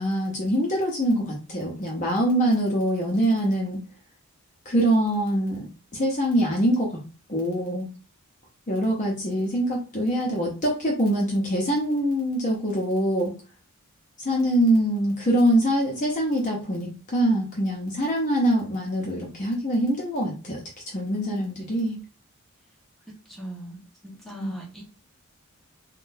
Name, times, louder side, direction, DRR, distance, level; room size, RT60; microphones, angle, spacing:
voice 1, 0.0-3.8 4.7-5.7 5.9-7.0 7.3-7.9 8.7-13.3 14.2-20.6 20.9-22.0 24.2-24.5, right 1 dB, 35° left, -2 dB, 0.6 m, -24 dB
voice 2, 23.3-24.8, right 1 dB, ahead, -4 dB, 1.0 m, -39 dB
3.6 x 2.2 x 2.6 m, 0.33 s
head